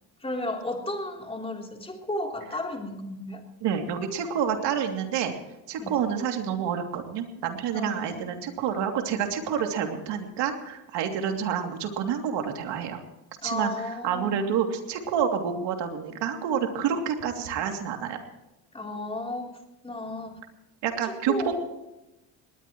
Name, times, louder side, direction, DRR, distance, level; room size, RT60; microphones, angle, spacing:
voice 1, 0.2-3.5 5.8-6.0 7.7-8.4 13.4-14.5 18.7-20.4 21.0-21.5, left 1 dB, 15° left, 1 dB, 3.5 m, -34 dB
voice 2, 3.6-5.3 5.7-13.0 13.4-13.7 14.0-18.2 20.8-21.5, right 8 dB, 80° right, 4 dB, 2.9 m, -28 dB
19.5 x 19.5 x 3.1 m, 0.95 s
cardioid pair, 130°, 42 cm